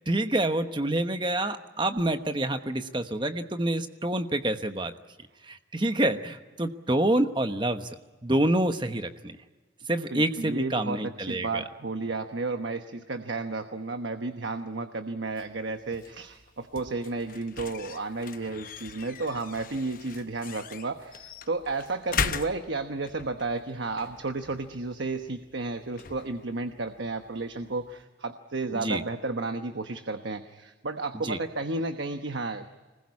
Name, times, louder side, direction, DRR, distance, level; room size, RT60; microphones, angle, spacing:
voice 1, 0.0-4.9 5.4-7.9 8.2-9.4 9.9-11.6 28.7-29.0 31.2-31.4, right 1 dB, 25° right, 8 dB, 1.1 m, -27 dB
voice 2, 10.1-32.7, right 3 dB, 85° right, 7 dB, 1.1 m, -32 dB
sound 1, 15.3-28.0, left 6 dB, 50° left, 0.8 m, -40 dB
25.5 x 20.5 x 9.6 m, 1.3 s
head